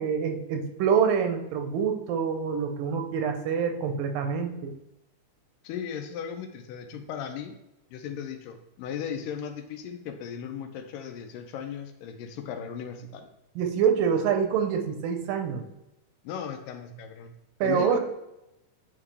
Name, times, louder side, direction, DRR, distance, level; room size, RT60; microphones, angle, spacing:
voice 1, 0.0-4.7 13.6-15.6 17.6-18.0, right 7 dB, 85° right, 5 dB, 2.5 m, -26 dB
voice 2, 5.6-7.6 7.9-13.3 16.2-17.3 17.6-18.0, left 8 dB, 85° left, 5 dB, 2.3 m, -36 dB
9.1 x 3.6 x 3.3 m, 0.90 s
omnidirectional pair, 3.8 m